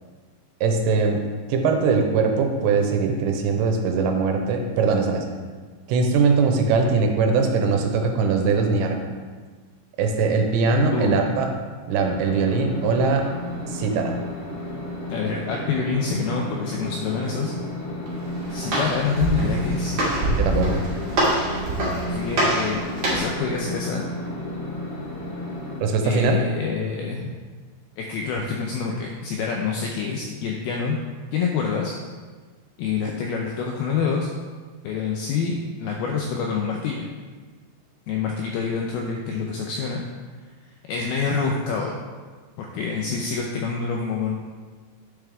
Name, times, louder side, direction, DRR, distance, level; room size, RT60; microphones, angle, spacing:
voice 1, 0.6-1.2 1.5-5.3 5.9-9.0 10.0-11.5 11.9-13.3 13.7-14.2 20.4-20.8 25.8-26.4, right 4 dB, 85° right, 3 dB, 2.9 m, -21 dB
voice 2, 10.9-11.4 15.1-17.5 18.5-20.0 22.1-24.1 26.0-27.3 28.0-31.0 31.3-31.9 32.8-34.3 34.8-37.1 38.1-40.0 40.9-41.9 42.6-44.3, left 5 dB, 85° left, 0 dB, 2.2 m, -26 dB
sound 1, 11.9-25.8, left 1 dB, 50° left, 3.1 m, -33 dB
Walk footsteps, 18.1-23.4, right 1 dB, 40° right, 2.3 m, -25 dB
9.1 x 7.0 x 3.5 m, 1.5 s
omnidirectional pair, 5.2 m